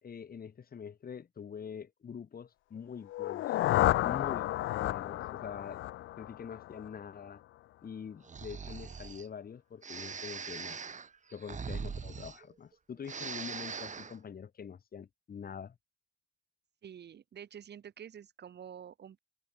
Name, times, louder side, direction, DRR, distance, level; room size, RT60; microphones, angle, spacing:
voice 1, 0.0-3.6 4.0-5.8 6.2-7.4 7.8-10.8 11.3-15.8, left 7 dB, 50° left, 5.4 m, -44 dB
sound 1, 3.1-7.0, left 15 dB, 80° left, 0.8 m, -31 dB
Breathing, 8.2-9.3 9.8-12.7 13.0-14.2, right 6 dB, 40° right, 2.5 m, -41 dB
voice 2, 16.8-19.2, right 9 dB, 60° right, 5.2 m, -48 dB
cardioid pair, 90°, 20 cm